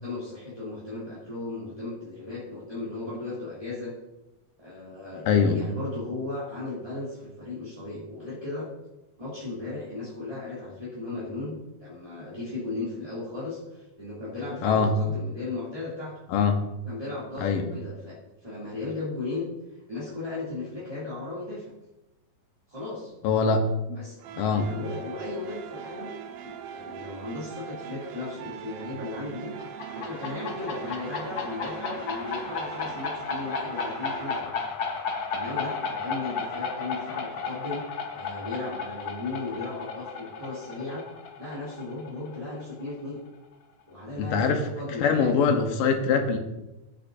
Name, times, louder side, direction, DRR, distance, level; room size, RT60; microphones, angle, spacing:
voice 1, 0.0-3.9 4.6-8.7 9.2-16.1 16.8-19.5 19.9-21.7 22.7-23.1 23.9-24.2 24.5-26.1 26.4-29.5 29.9-34.6 35.3-37.8 38.1-41.0 41.4-43.2 43.9-45.6, left 3 dB, 10° right, -10 dB, 2.2 m, -36 dB
voice 2, 5.3-5.6 14.6-14.9 16.3-16.6 17.4-17.7 23.2-23.6 24.4-24.7 44.2-44.7 45.0-46.4, left 5 dB, 85° left, 4 dB, 2.7 m, -23 dB
sound 1, 24.2-34.4, right 9 dB, 80° right, 1.6 m, -41 dB
sound 2, 29.6-43.0, left 5 dB, 55° left, 1.7 m, -34 dB
15.5 x 8.3 x 2.6 m, 1.0 s
omnidirectional pair, 3.8 m